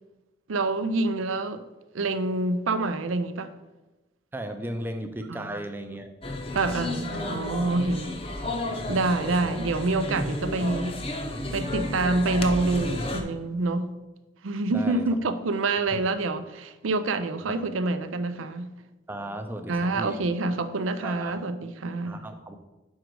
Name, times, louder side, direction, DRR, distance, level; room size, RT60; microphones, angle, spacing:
voice 1, 0.5-1.6 1.9-3.5 5.3-5.5 6.5-8.5 8.9-11.0 11.5-13.9 14.4-18.7 19.7-22.2, right 2 dB, 90° right, 0.5 m, -27 dB
voice 2, 4.3-6.2 9.4-9.6 14.7-15.0 15.9-16.0 17.4-17.6 19.1-20.2 21.0-21.3 22.1-22.6, right 1 dB, 10° right, 0.5 m, -36 dB
sound 1, 6.2-13.2, left 1 dB, 30° left, 0.7 m, -32 dB
6.4 x 5.0 x 4.6 m
head